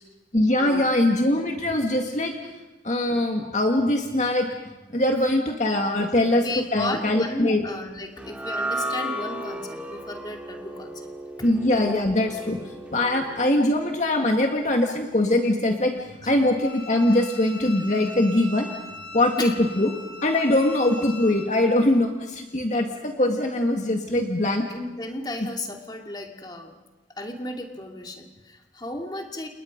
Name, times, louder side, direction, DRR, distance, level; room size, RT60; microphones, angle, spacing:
voice 1, 0.3-2.3 2.8-4.5 4.9-7.6 11.4-15.9 16.2-18.7 19.1-19.9 20.2-24.7, left 1 dB, 40° left, 2 dB, 2.0 m, -22 dB
voice 2, 6.4-11.0 16.2-16.3 19.4-19.5 24.7-26.7 27.2-29.5, left 2 dB, 25° left, 2 dB, 2.6 m, -34 dB
sound 1, 8.2-14.6, right 1 dB, 10° right, 2.4 m, -35 dB
Bowed string instrument, 16.6-21.5, left 2 dB, 65° left, 5.5 m, -40 dB
30.0 x 29.0 x 5.3 m, 1.1 s
head